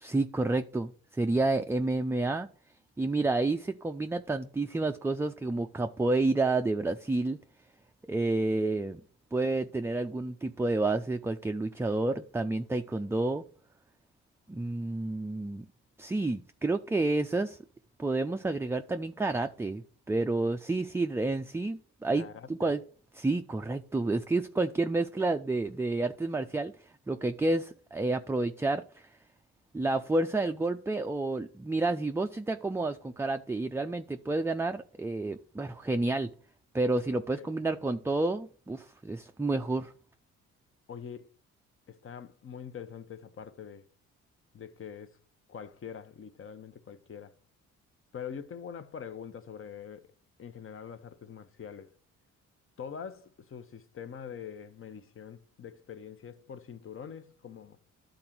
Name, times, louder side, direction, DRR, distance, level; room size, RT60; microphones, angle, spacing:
voice 1, 0.0-2.5 3.0-7.4 8.1-9.0 9.3-13.4 14.5-15.7 16.0-17.6 18.0-22.8 23.1-29.1 29.7-36.3 36.7-39.9, right 2 dB, 10° right, 0.4 m, -30 dB
voice 2, 22.2-22.7 37.3-37.5 40.9-41.3 41.9-43.9 44.5-45.2 45.5-47.4 48.1-50.1 50.4-51.9 52.8-57.8, left 7 dB, 45° left, 0.9 m, -44 dB
11.5 x 3.9 x 5.9 m
cardioid pair, 90°, 30 cm